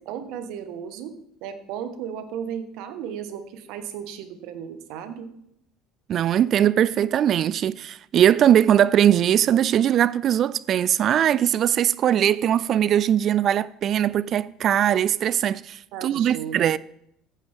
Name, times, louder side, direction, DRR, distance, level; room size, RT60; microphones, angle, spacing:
voice 1, 0.1-1.1 1.4-5.3 15.9-16.7, right 8 dB, 70° right, 1.4 m, -35 dB
voice 2, 6.1-16.8, right 10 dB, 50° right, 0.3 m, -20 dB
14.5 x 9.1 x 3.6 m
supercardioid pair, 85°, 0 cm